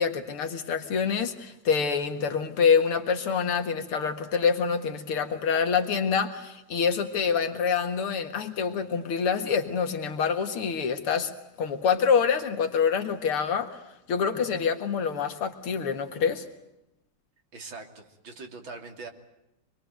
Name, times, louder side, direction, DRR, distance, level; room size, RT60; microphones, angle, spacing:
voice 1, 0.0-11.3 11.6-13.7 14.1-16.4, left 6 dB, 80° left, 7 dB, 2.6 m, -26 dB
voice 2, 17.5-19.1, right 3 dB, 60° right, 5 dB, 3.6 m, -42 dB
26.5 x 21.5 x 9.2 m, 0.87 s
omnidirectional pair, 2.4 m